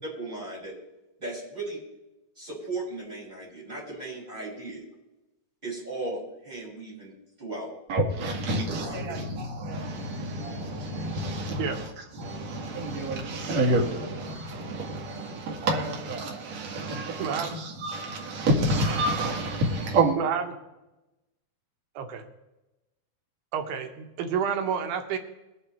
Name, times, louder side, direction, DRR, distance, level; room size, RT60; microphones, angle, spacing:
voice 1, 0.0-0.7 1.2-1.8 2.4-4.8 5.6-7.7 8.7-9.3, right 2 dB, 10° right, 5.5 m, -37 dB
voice 2, 7.9-20.2, right 1 dB, 50° right, 2.8 m, -28 dB
voice 3, 17.2-17.6 20.2-20.4 22.0-22.2 23.5-25.2, right 7 dB, 80° right, 2.9 m, -29 dB
20.5 x 7.1 x 4.4 m
omnidirectional pair, 4.3 m